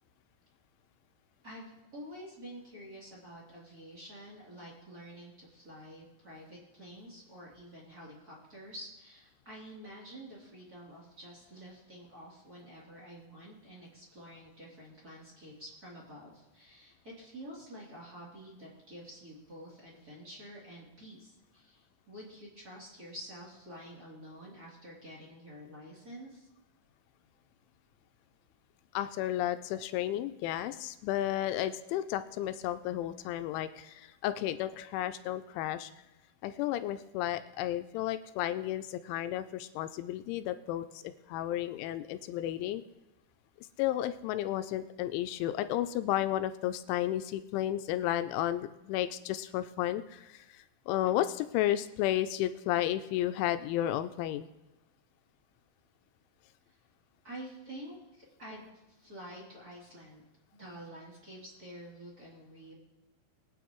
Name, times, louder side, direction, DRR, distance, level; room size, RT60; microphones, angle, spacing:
voice 1, 1.4-26.5 56.7-56.8 57.2-60.2 60.6-62.7, equal, 25° right, -5 dB, 2.8 m, -49 dB
voice 2, 28.9-35.9 36.4-42.8 43.8-54.5, left 13 dB, 85° left, 10 dB, 2.9 m, -33 dB
22.5 x 9.3 x 3.1 m, 1.0 s
omnidirectional pair, 5.6 m